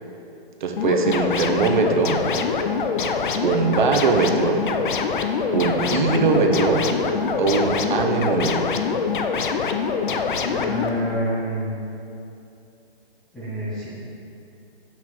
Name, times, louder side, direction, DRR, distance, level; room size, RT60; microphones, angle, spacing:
voice 1, 0.6-2.3 3.4-4.7 5.5-6.9 7.4-8.8, right 4 dB, 50° right, 3 dB, 0.8 m, -21 dB
sound 1, 0.8-10.9, left 5 dB, 50° left, 0.6 m, -24 dB
voice 2, 10.5-11.7 13.3-13.9, equal, ahead, -14 dB, 0.6 m, -27 dB
8.2 x 5.8 x 4.7 m, 2.7 s
hypercardioid pair, 165°, 32 cm